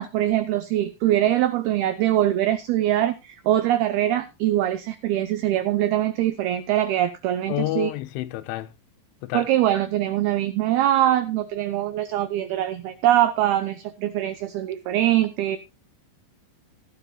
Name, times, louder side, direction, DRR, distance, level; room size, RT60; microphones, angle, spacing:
voice 1, 0.0-7.9 9.3-15.6, right 13 dB, 90° right, 2.1 m, -23 dB
voice 2, 7.5-8.7 9.2-9.5, left 15 dB, 85° left, 3.2 m, -29 dB
16.5 x 12.0 x 2.3 m
omnidirectional pair, 5.5 m